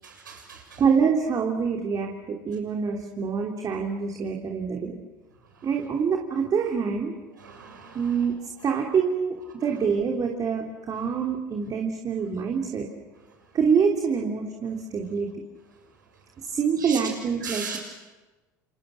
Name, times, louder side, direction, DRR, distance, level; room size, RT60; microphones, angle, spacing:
voice 1, 0.0-0.8 7.4-8.1 16.8-17.0 17.4-17.8, right 6 dB, 85° right, 2 dB, 6.9 m, -37 dB
voice 2, 0.8-5.0 5.6-7.1 7.9-8.3 8.6-12.9 13.5-15.3 16.4-17.8, right 6 dB, 40° right, 1 dB, 3.3 m, -26 dB
30.0 x 29.0 x 6.4 m, 1.2 s
hypercardioid pair, 65°, 10 cm